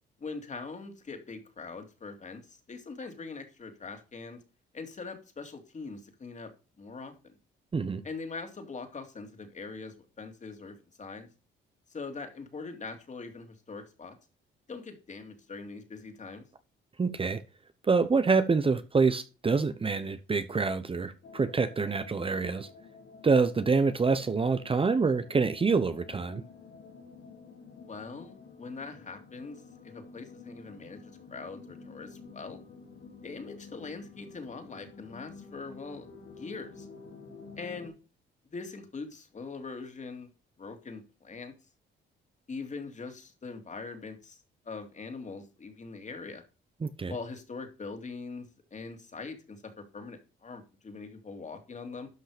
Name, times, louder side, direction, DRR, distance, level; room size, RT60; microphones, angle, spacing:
voice 1, 0.2-4.4 4.7-6.5 6.8-7.3 8.0-11.3 11.9-14.1 14.7-16.5 27.9-31.0 31.3-32.6 33.2-36.1 36.3-36.9 37.6-37.9 38.5-40.3 40.6-41.5 42.5-46.4 47.1-48.5 48.7-52.1, left 4 dB, 35° left, 2.7 m, -42 dB
voice 2, 17.0-17.4 17.8-22.7 23.2-26.4 46.8-47.1, right 4 dB, 25° right, 0.8 m, -26 dB
sound 1, 21.2-37.9, left 4 dB, 65° left, 3.8 m, -50 dB
12.0 x 5.5 x 5.1 m
cardioid pair, 90°, 20 cm